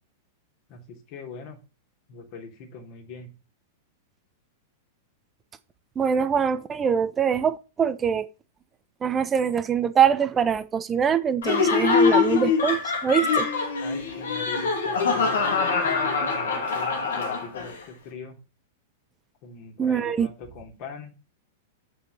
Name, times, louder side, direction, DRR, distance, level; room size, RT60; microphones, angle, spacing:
voice 1, 0.7-1.6 2.1-3.3 13.8-18.4 19.4-21.1, left 5 dB, 45° left, 3.6 m, -41 dB
voice 2, 6.0-8.3 9.0-13.5 19.8-20.3, right 7 dB, 20° right, 1.0 m, -23 dB
Laughter, 11.4-17.8, left 5 dB, 65° left, 2.8 m, -23 dB
8.3 x 6.8 x 4.5 m
figure-of-eight pair, 100°, 0 cm